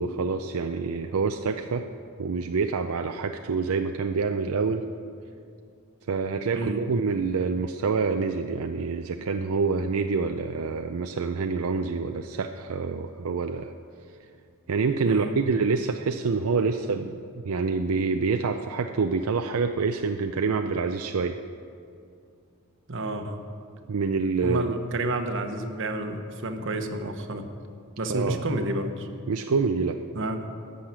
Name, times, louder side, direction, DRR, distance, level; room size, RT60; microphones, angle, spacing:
voice 1, 0.0-1.8 2.2-4.8 6.1-13.7 14.7-21.4 23.9-24.8 28.1-28.4 29.3-30.0, right 4 dB, 85° right, 6 dB, 0.5 m, -27 dB
voice 2, 22.9-23.4 24.4-27.4 28.0-29.1 30.1-30.5, right 1 dB, 60° right, 6 dB, 1.0 m, -30 dB
13.5 x 6.5 x 8.7 m, 2.4 s
head